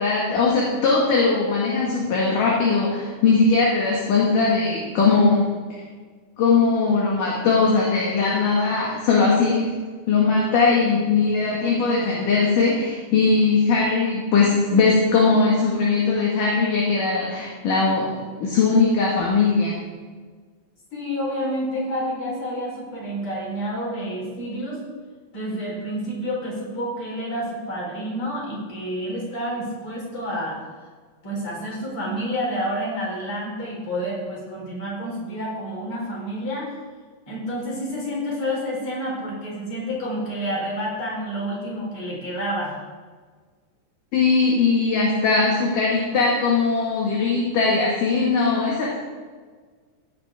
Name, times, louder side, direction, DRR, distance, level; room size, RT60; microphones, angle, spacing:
voice 1, 0.0-5.4 6.4-9.7 10.1-19.7 44.1-49.0, left 4 dB, 60° left, -4 dB, 3.2 m, -20 dB
voice 2, 20.9-24.8 25.3-30.6 31.2-36.7 37.3-42.8, equal, 35° left, -4 dB, 5.0 m, -29 dB
16.0 x 12.0 x 3.7 m, 1.5 s
omnidirectional pair, 4.6 m